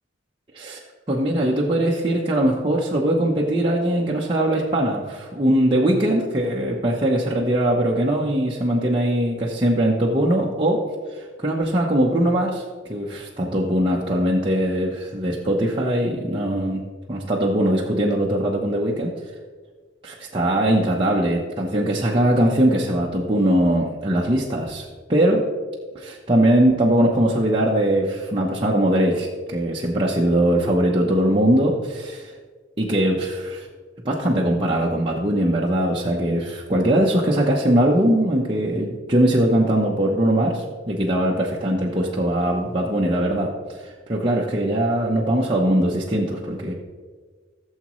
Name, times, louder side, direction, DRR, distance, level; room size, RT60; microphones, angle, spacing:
voice 1, 1.1-10.8 11.1-16.8 17.1-19.1 20.0-25.4 25.9-32.3 32.8-33.7 34.0-43.5 43.8-46.7, right 1 dB, 25° right, -4 dB, 0.9 m, -21 dB
16.0 x 7.3 x 3.1 m, 1.5 s
head